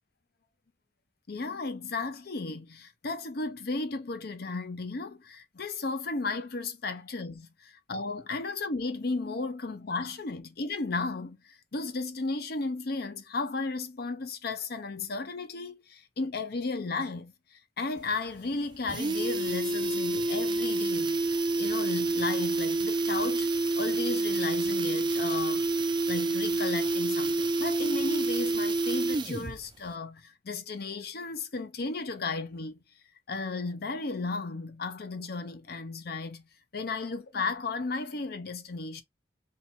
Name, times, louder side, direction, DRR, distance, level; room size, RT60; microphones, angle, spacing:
voice 1, 1.3-23.5 23.8-25.7 26.1-32.8 33.3-36.4 36.7-39.0, left 3 dB, 60° left, 0.7 m, -34 dB
sound 1, 18.0-18.1 18.4-18.5 18.7-29.6 29.9-30.0, right 2 dB, 25° right, 0.4 m, -28 dB
2.8 x 2.7 x 4.1 m
head